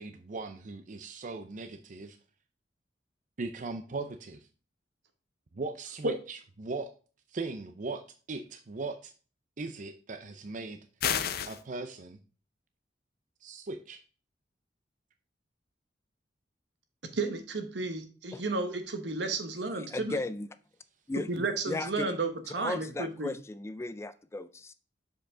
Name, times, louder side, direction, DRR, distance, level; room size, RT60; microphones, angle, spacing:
voice 1, 0.0-2.2 3.4-4.5 5.5-6.9 7.3-8.0 8.3-9.1 9.6-10.8 11.5-12.2 13.4-14.0, right 3 dB, 45° right, 0.5 m, -39 dB
sound 1, 11.0-11.6, left 8 dB, 60° left, 0.6 m, -29 dB
voice 2, 17.1-20.2 21.2-23.3, right 3 dB, 75° right, 1.2 m, -33 dB
voice 3, 19.7-20.5 21.1-22.2 22.5-24.7, left 2 dB, 15° left, 0.3 m, -36 dB
6.9 x 5.1 x 3.7 m
head